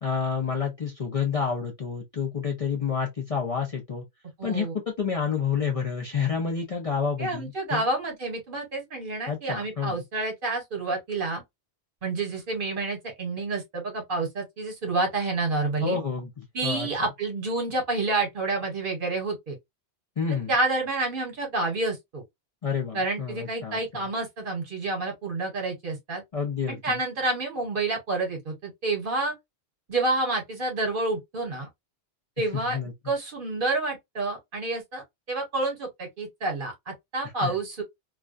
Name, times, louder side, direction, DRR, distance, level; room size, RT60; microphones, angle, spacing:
voice 1, 0.0-4.0 4.4-4.7 5.0-7.8 9.3-9.9 15.8-16.9 20.2-20.5 22.6-23.8 26.3-27.0 32.5-33.1 37.4-37.5, left 6 dB, 45° left, 0.5 m, -29 dB
voice 2, 4.4-4.7 7.2-11.4 12.0-16.0 16.5-19.6 20.5-22.2 22.9-26.2 26.7-29.3 29.9-31.7 32.4-32.8 33.0-35.0 35.3-37.8, right 2 dB, 55° right, 1.1 m, -29 dB
2.4 x 2.2 x 2.4 m
omnidirectional pair, 1.1 m